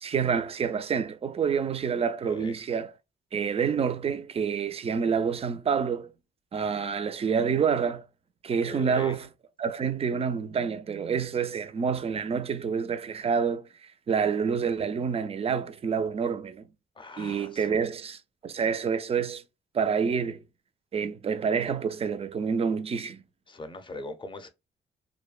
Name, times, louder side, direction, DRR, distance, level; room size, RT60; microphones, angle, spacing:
voice 1, 0.0-2.9 3.3-6.1 6.5-8.0 8.4-9.3 9.6-16.7 17.2-18.2 18.4-19.4 19.7-20.4 20.9-23.2, right 6 dB, 30° right, 0.4 m, -28 dB
voice 2, 2.2-2.6 8.6-9.2 17.0-17.8 23.5-24.5, left 2 dB, 25° left, 0.6 m, -40 dB
2.6 x 2.1 x 2.3 m
cardioid pair, 90°, 20 cm